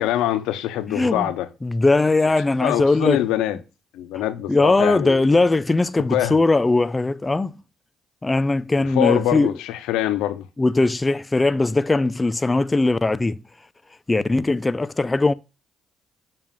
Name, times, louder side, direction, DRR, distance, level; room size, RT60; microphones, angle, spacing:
voice 1, 0.0-1.5 2.6-3.6 3.9-5.2 6.1-6.3 9.0-10.5, left 13 dB, 85° left, 0.5 m, -23 dB
voice 2, 0.9-1.3 1.6-3.2 4.1-4.2 4.5-7.6 8.2-9.6 10.6-13.4 14.1-15.3, left 2 dB, 20° left, 0.4 m, -20 dB
7.2 x 2.4 x 5.3 m
supercardioid pair, 70°, 0 cm